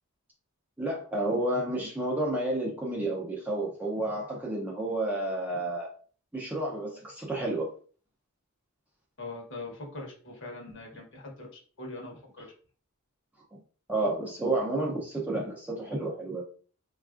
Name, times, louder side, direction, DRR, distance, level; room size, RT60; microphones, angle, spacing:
voice 1, 0.8-5.9 6.3-7.7 13.5-13.6 13.9-16.4, right 2 dB, 5° right, -2 dB, 0.5 m, -30 dB
voice 2, 9.2-11.5 11.8-12.5, left 2 dB, 55° left, 0 dB, 0.9 m, -41 dB
3.4 x 2.4 x 2.4 m, 0.42 s
head